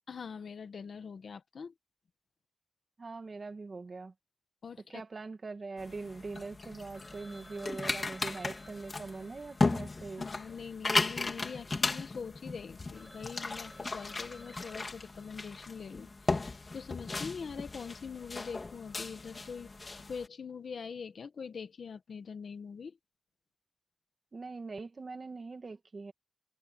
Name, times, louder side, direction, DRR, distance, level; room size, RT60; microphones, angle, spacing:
voice 1, 0.1-1.7 4.6-5.0 10.2-19.7 20.1-23.0, left 6 dB, 85° left, 1.5 m, -43 dB
voice 2, 3.0-4.1 4.9-10.3 24.3-26.1, right 3 dB, 55° right, 2.2 m, -42 dB
sound 1, 5.8-20.3, left 3 dB, 45° left, 4.0 m, -36 dB
Telephone, 6.9-11.3 11.6-11.7 12.2-12.3 12.6-12.7 12.9-15.9, left 1 dB, 10° left, 3.7 m, -56 dB
cardioid pair, 65°, 0 cm